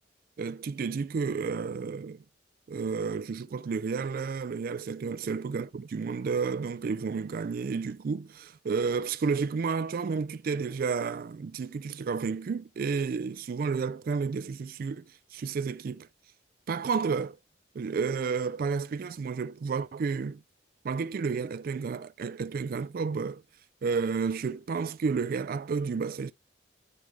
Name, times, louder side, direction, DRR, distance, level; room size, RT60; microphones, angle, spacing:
voice 1, 0.4-2.2 2.7-16.1 16.7-17.4 17.7-20.4 20.8-23.4 23.8-26.3, right 5 dB, 50° right, 0.3 m, -31 dB
9.9 x 3.3 x 3.1 m
head